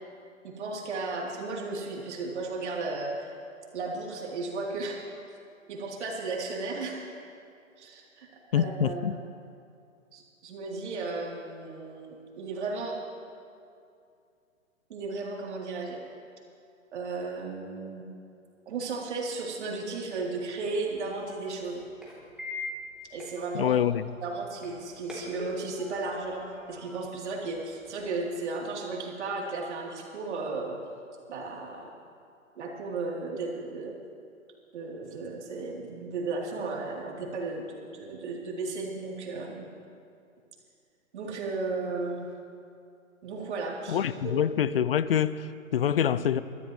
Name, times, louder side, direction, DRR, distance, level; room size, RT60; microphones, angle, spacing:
voice 1, 0.4-3.3 3.7-5.0 5.7-7.1 7.8-9.2 10.1-13.0 14.9-16.0 16.9-18.1 18.6-21.8 23.1-23.8 24.2-30.8 31.3-32.0 32.5-34.0 34.7-39.6 41.1-42.3 43.2-44.3, right 3 dB, 55° right, -2 dB, 3.6 m, -35 dB
voice 2, 8.5-9.2 23.5-24.1 43.9-46.4, left 9 dB, 45° left, 16 dB, 0.5 m, -26 dB
sound 1, 20.2-28.1, left 1 dB, ahead, 3.1 m, -44 dB
23.5 x 14.5 x 3.2 m, 2.5 s
hypercardioid pair, 140°, 41 cm